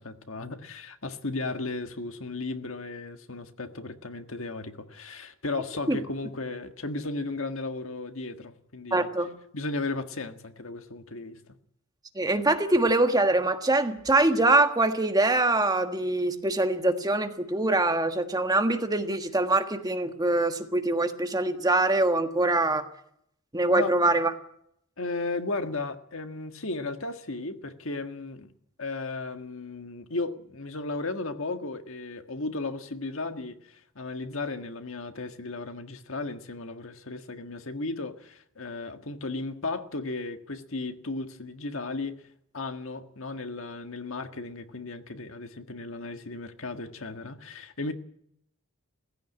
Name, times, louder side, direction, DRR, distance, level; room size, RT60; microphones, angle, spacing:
voice 1, 0.0-9.1 9.5-11.5 23.7-23.9 25.0-28.5 28.8-42.2 42.5-47.9, left 3 dB, 65° left, 1.6 m, -35 dB
voice 2, 8.9-9.3 12.1-22.8 23.5-24.3, right 2 dB, 15° right, 1.5 m, -24 dB
17.0 x 16.0 x 9.7 m
head